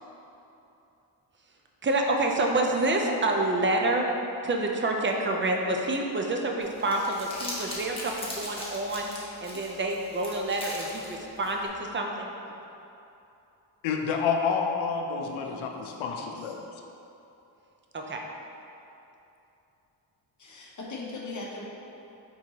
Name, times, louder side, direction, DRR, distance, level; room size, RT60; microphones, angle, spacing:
voice 1, 1.8-4.1 4.4-9.1 9.4-12.3 17.9-18.2, right 2 dB, 25° right, 1 dB, 0.4 m, -28 dB
Crumpling crinkling, 6.6-11.7, left 1 dB, 10° left, 0.9 m, -40 dB
voice 2, 13.8-16.6, left 6 dB, 85° left, 3 dB, 0.6 m, -29 dB
voice 3, 15.4-16.5 20.4-21.6, left 3 dB, 40° left, -4 dB, 0.9 m, -40 dB
4.4 x 3.7 x 2.8 m, 2.9 s
cardioid pair, 75°, 46 cm